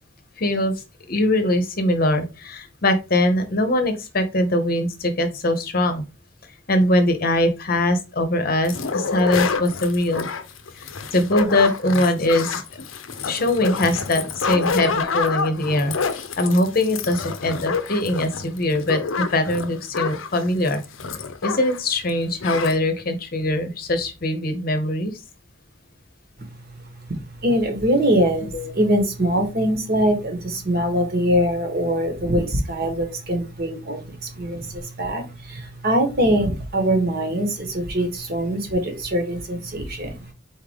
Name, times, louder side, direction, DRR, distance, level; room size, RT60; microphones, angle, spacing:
voice 1, 0.4-0.7 1.1-6.0 6.7-10.3 10.8-12.6 13.2-15.9 16.4-20.8 21.4-25.1 28.5-28.8 31.8-32.0 37.3-37.4, left 1 dB, 50° left, 8 dB, 0.8 m, -22 dB
sound 1, 8.6-21.8 22.1-22.2 22.4-22.8, left 5 dB, 80° left, 0.6 m, -28 dB
voice 2, 27.1-40.3, equal, 50° right, 4 dB, 1.2 m, -23 dB
4.2 x 3.6 x 3.5 m, 0.28 s
head